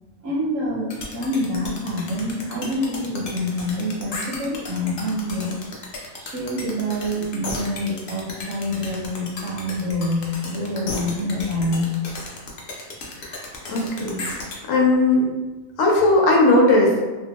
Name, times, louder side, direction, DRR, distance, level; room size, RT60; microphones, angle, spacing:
voice 1, 0.2-5.5 6.2-11.9, left 1 dB, 80° right, -2 dB, 1.0 m, -26 dB
sound 1, 0.9-14.6, left 2 dB, 55° left, 0.6 m, -34 dB
voice 2, 13.7-14.2 14.7-15.3 15.8-17.1, left 2 dB, 80° left, 0 dB, 1.0 m, -17 dB
2.8 x 2.1 x 2.8 m, 1.2 s
omnidirectional pair, 1.3 m